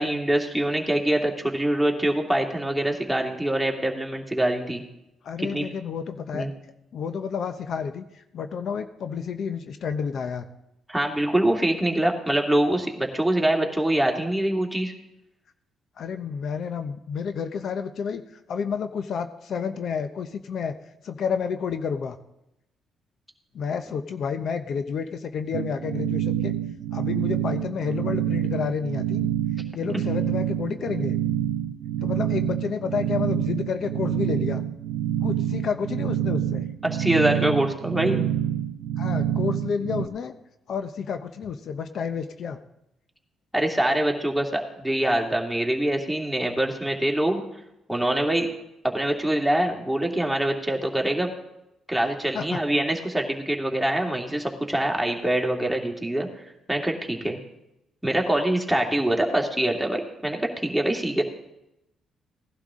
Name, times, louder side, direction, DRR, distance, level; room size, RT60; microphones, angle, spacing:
voice 1, 0.0-4.8 5.4-5.7 6.3-6.5 10.9-14.9 36.8-38.2 43.5-47.4 47.9-48.5 48.8-51.3 51.9-56.3 56.7-57.4 58.0-61.2, right 1 dB, ahead, 0 dB, 2.3 m, -24 dB
voice 2, 5.2-6.5 6.9-10.5 16.0-20.8 21.0-22.2 23.5-26.5 26.9-29.3 29.7-31.2 32.0-34.6 35.2-36.7 39.0-40.3 40.7-42.6 52.3-52.6, left 6 dB, 60° left, 9 dB, 0.8 m, -30 dB
sound 1, 25.5-40.1, right 11 dB, 85° right, 0.5 m, -27 dB
17.5 x 11.5 x 3.7 m, 0.87 s
cardioid pair, 90°, 0 cm